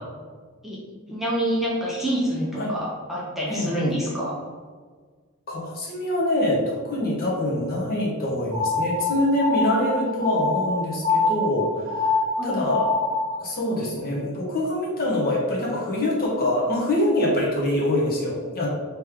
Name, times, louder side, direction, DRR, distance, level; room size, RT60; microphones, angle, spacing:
voice 1, 1.1-4.3 10.0-10.2 12.4-12.6, equal, ahead, -7 dB, 0.6 m, -27 dB
voice 2, 5.5-11.9 12.4-12.9 13.4-18.7, left 1 dB, 45° left, -4 dB, 1.0 m, -24 dB
sound 1, 8.5-13.4, left 3 dB, 35° right, 1.2 m, -25 dB
3.2 x 3.1 x 3.5 m, 1.5 s
head